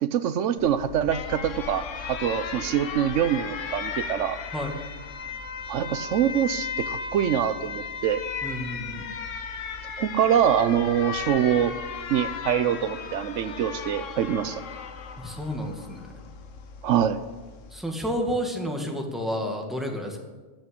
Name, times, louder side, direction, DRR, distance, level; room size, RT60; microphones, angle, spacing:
voice 1, 0.0-4.4 5.7-8.2 10.0-11.7 12.1-14.6 16.8-17.2, right 9 dB, 80° right, 12 dB, 1.0 m, -24 dB
Alarm, 0.6-17.8, left 6 dB, 85° left, 1.3 m, -36 dB
voice 2, 8.4-9.0 15.2-16.1 17.7-20.2, equal, ahead, 1 dB, 2.0 m, -30 dB
14.0 x 6.6 x 9.9 m, 1.2 s
omnidirectional pair, 1.3 m